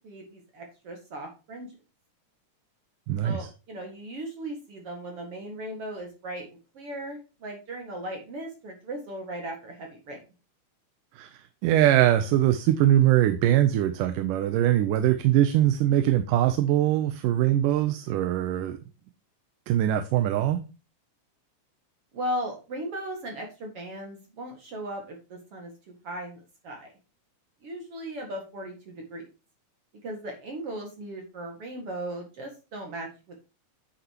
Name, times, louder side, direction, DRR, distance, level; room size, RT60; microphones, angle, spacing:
voice 1, 0.0-1.7 3.2-10.2 22.1-25.7 26.0-26.9 27.6-29.3 30.0-33.5, right 1 dB, 50° right, 2 dB, 2.6 m, -37 dB
voice 2, 3.1-3.5 11.2-18.8 19.7-20.6, right 12 dB, 80° right, 10 dB, 2.3 m, -22 dB
9.4 x 6.9 x 2.9 m, 0.31 s
omnidirectional pair, 3.8 m